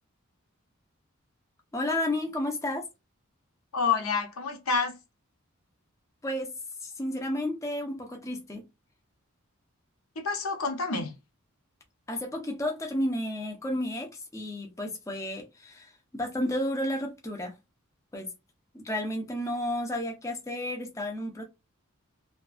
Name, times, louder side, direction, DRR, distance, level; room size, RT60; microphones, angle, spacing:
voice 1, 1.7-2.9 6.2-6.5 6.8-8.6 12.1-17.5 18.1-18.3 18.7-21.4, left 1 dB, 15° left, 0.5 m, -32 dB
voice 2, 3.7-5.0 10.2-11.1, left 5 dB, 80° left, 0.8 m, -28 dB
2.5 x 2.2 x 2.4 m
head